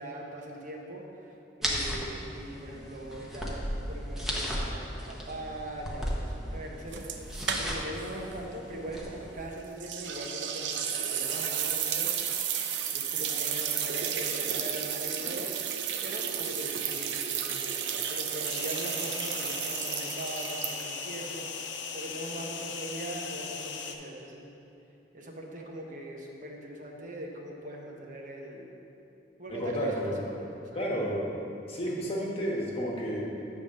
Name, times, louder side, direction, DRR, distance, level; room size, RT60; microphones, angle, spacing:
voice 1, 0.0-1.3 1.6-10.8 11.1-12.2 12.9-15.5 16.0-24.5 25.1-28.7 29.4-30.9, right 1 dB, 45° right, 0 dB, 0.8 m, -41 dB
sound 1, 1.6-9.3, equal, ahead, 0.8 m, -36 dB
sound 2, 6.9-8.0 8.3-8.4 9.8-21.1, right 8 dB, 90° right, 0.5 m, -32 dB
sound 3, 18.5-24.0, left 6 dB, 90° left, 0.5 m, -38 dB
voice 2, 29.5-30.2 30.7-31.3 31.7-33.3, equal, 35° left, -3 dB, 1.2 m, -31 dB
8.3 x 3.5 x 6.4 m, 2.8 s
head